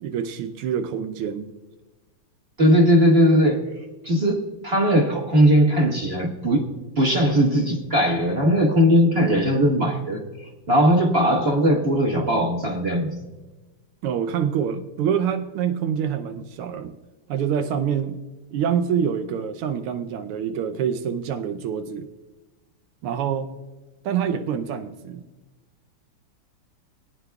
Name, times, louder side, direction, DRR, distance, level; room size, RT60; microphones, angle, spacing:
voice 1, 0.0-1.5 14.0-16.9 17.3-18.2 18.5-22.1 23.0-23.5 24.0-25.2, right 8 dB, 90° right, 7 dB, 1.6 m, -26 dB
voice 2, 2.6-3.6 4.0-6.6 7.0-10.2 10.7-13.1, equal, 30° right, -1 dB, 1.5 m, -19 dB
21.5 x 9.7 x 2.3 m, 1.2 s
omnidirectional pair, 2.4 m